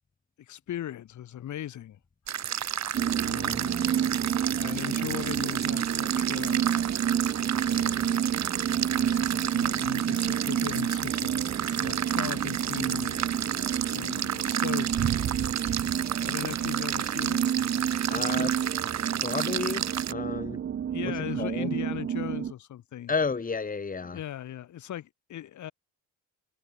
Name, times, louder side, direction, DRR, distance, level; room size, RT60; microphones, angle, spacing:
voice 1, 0.4-2.0 2.4-2.8 3.2-3.9 4.6-6.6 7.6-8.3 8.9-13.2 13.9-15.0 16.2-17.6 18.1-18.5 20.9-23.1 24.0-25.7, left 11 dB, 70° left, 4.8 m, -39 dB
sound 1, 2.3-20.1, right 9 dB, 65° right, 7.0 m, -32 dB
sound 2, 2.9-22.5, right 9 dB, 45° right, 0.8 m, -29 dB
voice 2, 18.1-18.5 19.0-20.6 21.0-21.8 23.1-24.2, left 4 dB, 25° left, 2.5 m, -32 dB
cardioid pair, 90°, 30 cm